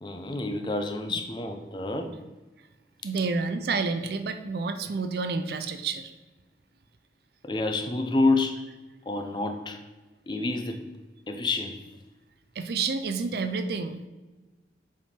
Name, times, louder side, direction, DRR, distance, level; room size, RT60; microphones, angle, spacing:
voice 1, 0.0-2.2 7.4-8.7 9.1-9.8 10.3-10.9 11.3-11.9, left 2 dB, 25° left, 6 dB, 0.5 m, -28 dB
voice 2, 3.0-6.1 12.6-14.0, right 4 dB, 60° right, 9 dB, 0.4 m, -29 dB
7.4 x 3.5 x 4.3 m, 1.2 s
head